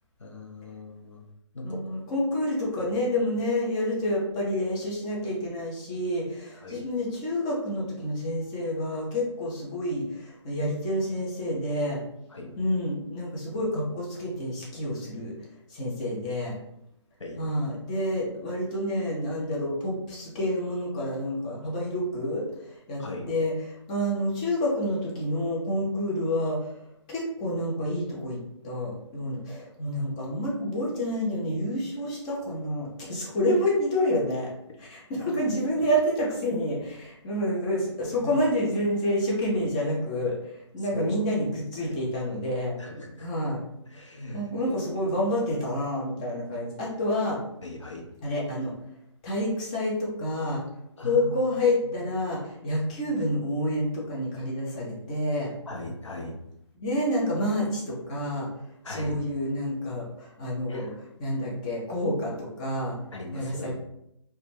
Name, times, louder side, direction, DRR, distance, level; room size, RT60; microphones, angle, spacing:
voice 1, 0.2-1.2 1.5-1.9 6.6-6.9 12.3-12.6 17.2-17.4 23.0-23.3 35.2-35.3 38.1-38.4 40.8-41.3 41.9-42.0 42.8-43.3 43.8-45.2 47.6-48.1 51.0-52.0 55.7-56.4 58.8-59.2 60.7-61.0 63.1-63.8, left 1 dB, 75° left, 1 dB, 0.7 m, -39 dB
voice 2, 1.6-12.0 12.6-15.3 15.7-16.5 17.4-23.5 23.9-26.8 27.1-28.4 28.6-34.5 34.8-41.5 41.7-42.7 43.2-43.6 44.3-47.4 48.2-48.7 49.2-50.6 51.0-55.5 56.8-58.5 58.9-60.9 61.2-63.0 63.3-63.7, left 1 dB, 15° left, -4 dB, 0.4 m, -28 dB
2.1 x 2.1 x 3.1 m, 0.79 s
figure-of-eight pair, 145°, 16 cm